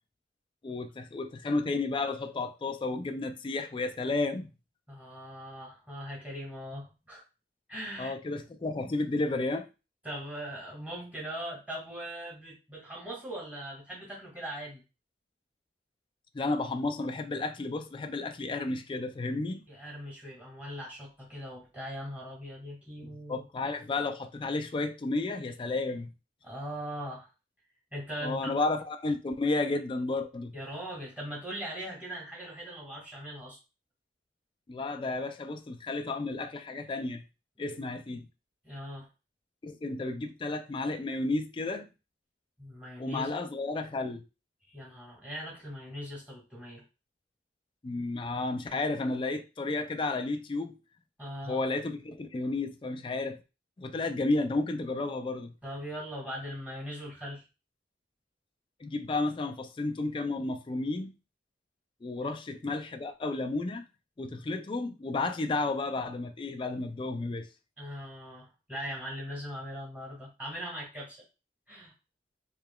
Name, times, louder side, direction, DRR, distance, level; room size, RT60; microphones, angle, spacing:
voice 1, 0.6-4.5 8.0-9.7 16.3-19.6 23.3-26.1 28.2-30.5 34.7-37.2 37.6-38.3 39.6-41.9 43.0-44.2 47.8-50.8 51.4-53.4 53.8-55.5 58.8-61.1 62.0-63.8 64.2-67.5, left 2 dB, 25° left, 0.3 m, -32 dB
voice 2, 4.9-7.2 7.7-8.2 10.0-14.8 19.7-23.4 26.4-27.3 27.9-28.6 30.5-33.6 37.6-37.8 38.6-39.1 42.6-43.3 44.6-46.8 51.2-51.6 55.6-57.4 62.2-62.3 67.8-71.2 71.7-71.9, equal, 10° right, 1.9 m, -40 dB
4.8 x 3.0 x 2.3 m
head